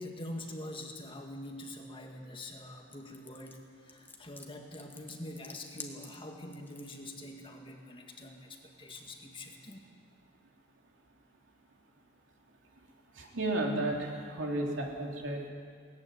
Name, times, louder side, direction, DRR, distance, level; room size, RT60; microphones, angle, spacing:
voice 1, 0.0-9.8, left 1 dB, 25° left, 2 dB, 1.9 m, -45 dB
sound 1, 2.9-7.1, left 3 dB, 10° left, 1.5 m, -49 dB
voice 2, 13.2-15.5, right 1 dB, 75° right, 0 dB, 3.1 m, -33 dB
18.5 x 15.0 x 9.4 m, 2.2 s
head